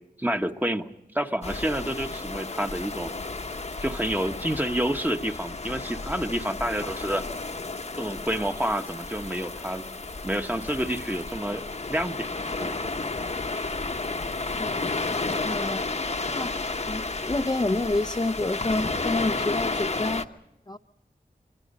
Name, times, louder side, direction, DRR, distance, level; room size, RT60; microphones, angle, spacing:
voice 1, 0.2-0.9 1.1-3.1 3.8-7.2 8.0-9.9 10.2-12.3 12.6-12.9, right 1 dB, 10° right, 6 dB, 1.2 m, -29 dB
sound 1, 1.4-20.2, left 3 dB, 45° left, 1.1 m, -32 dB
voice 2, 15.2-15.8 16.2-20.2 20.7-20.8, left 2 dB, 25° left, 6 dB, 0.7 m, -29 dB
25.5 x 24.5 x 5.4 m, 0.93 s
wide cardioid pair, 50°, 16 cm